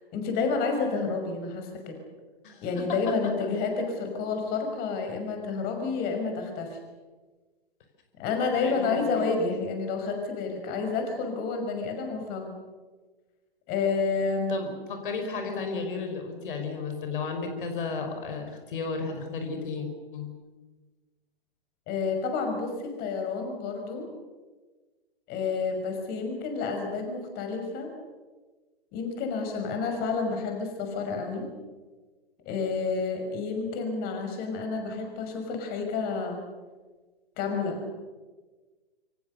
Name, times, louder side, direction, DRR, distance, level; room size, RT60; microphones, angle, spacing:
voice 1, 0.1-2.0 2.6-6.8 8.2-12.5 13.7-14.6 21.9-24.1 25.3-27.9 28.9-31.5 32.5-36.4 37.4-37.9, left 4 dB, 30° left, 4 dB, 6.0 m, -30 dB
voice 2, 8.6-9.3 14.5-19.9 20.1-20.3, left 4 dB, 55° left, 5 dB, 5.6 m, -33 dB
28.5 x 26.0 x 6.8 m, 1.3 s
figure-of-eight pair, 120°, 31 cm